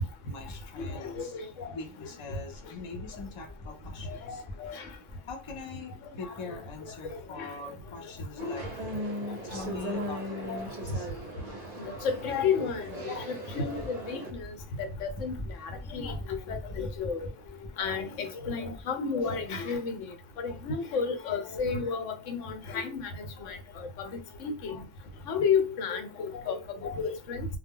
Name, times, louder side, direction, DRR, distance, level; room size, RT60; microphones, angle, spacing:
voice 1, 0.3-4.7 5.2-8.7 9.4-11.1 15.1-16.9 19.4-19.5 23.4-23.5, left 3 dB, 40° left, 0.4 m, -42 dB
voice 2, 0.8-1.8 4.1-4.9 6.5-6.6 7.4-7.8 8.4-8.6 9.6-9.7 10.5-10.6 12.0-15.3 15.6-17.3 17.8-23.1 23.5-24.1 24.4-24.8 25.3-27.5, left 5 dB, 90° left, 1.0 m, -32 dB
sound 1, 8.4-14.3, equal, 45° right, 0.6 m, -38 dB
2.2 x 2.1 x 3.5 m
omnidirectional pair, 1.2 m